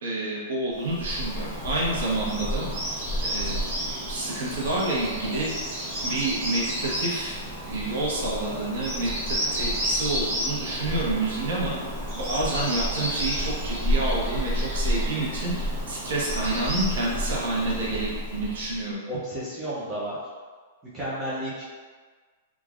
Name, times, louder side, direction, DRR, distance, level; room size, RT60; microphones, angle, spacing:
voice 1, 0.0-2.9 3.2-5.5 6.0-7.4 7.7-11.7 12.2-18.9, right 2 dB, 80° right, -5 dB, 0.9 m, -29 dB
Bird vocalization bird call bird song, 0.8-18.8, equal, 50° right, 0.9 m, -30 dB
voice 2, 17.6-18.0 19.1-20.2 20.9-21.6, right 1 dB, 15° right, -9 dB, 0.5 m, -33 dB
3.1 x 2.4 x 2.4 m, 1.5 s
supercardioid pair, 165°, 0 cm